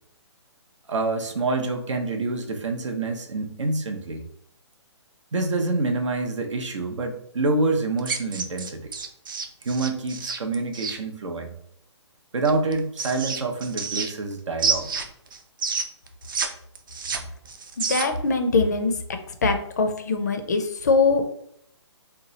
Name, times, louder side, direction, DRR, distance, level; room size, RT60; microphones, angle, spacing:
voice 1, 0.9-4.2 5.3-8.9 9.6-11.6 12.3-14.9, right 3 dB, 85° right, 4 dB, 0.8 m, -27 dB
sound 1, 8.0-11.0 12.4-14.3 14.6-16.5 16.7-18.3, right 5 dB, 45° right, 0.4 m, -29 dB
voice 2, 17.8-18.9 19.3-21.2, left 4 dB, 35° left, 7 dB, 0.4 m, -22 dB
2.9 x 2.2 x 3.9 m, 0.71 s
hypercardioid pair, 170°, 15 cm